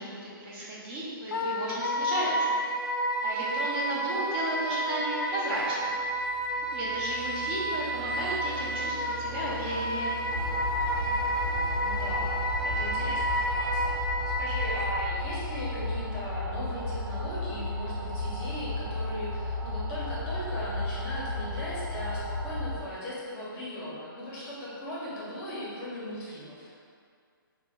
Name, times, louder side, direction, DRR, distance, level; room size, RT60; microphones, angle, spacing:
voice 1, 0.0-2.6 3.2-5.9 6.7-10.1, right 1 dB, 35° right, -7 dB, 0.7 m, -34 dB
Wind instrument woodwind instrument, 1.3-15.1, equal, 70° left, 0.4 m, -30 dB
sound 1, 5.8-16.0, right 4 dB, ahead, 0.4 m, -42 dB
sound 2, 10.3-22.8, left 2 dB, 85° right, 0.6 m, -34 dB
voice 2, 11.8-14.0 14.2-26.7, left 1 dB, 25° left, -8 dB, 0.7 m, -38 dB
2.9 x 2.1 x 3.5 m, 2.2 s
hypercardioid pair, 145°, 12 cm